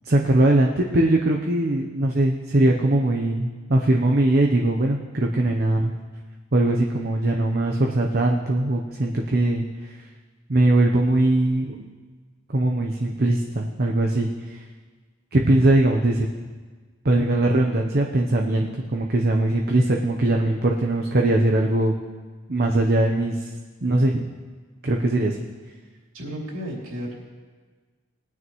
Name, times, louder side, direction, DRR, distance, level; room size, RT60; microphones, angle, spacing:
voice 1, 0.0-5.9 6.5-9.9 10.5-11.8 12.5-14.6 15.3-16.3 17.0-21.9 22.5-23.5 23.8-24.2 24.8-25.4, right 1 dB, 50° right, 1 dB, 0.8 m, -21 dB
voice 2, 26.1-27.1, equal, 75° right, -3 dB, 3.0 m, -33 dB
20.0 x 9.4 x 3.1 m, 1.4 s
head